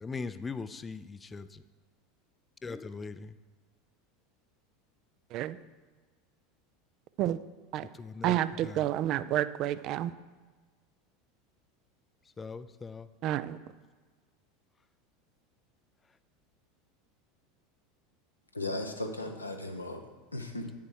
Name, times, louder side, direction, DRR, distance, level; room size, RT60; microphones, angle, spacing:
voice 1, 0.0-1.6 2.6-3.3 7.9-8.9 12.4-13.1, left 4 dB, 20° left, 14 dB, 0.4 m, -40 dB
voice 2, 8.2-10.1 13.2-13.6, right 13 dB, 45° right, 15 dB, 0.4 m, -29 dB
voice 3, 18.5-20.7, left 2 dB, 90° left, 4 dB, 0.8 m, -37 dB
9.1 x 7.0 x 4.8 m, 1.4 s
figure-of-eight pair, 80°, 0 cm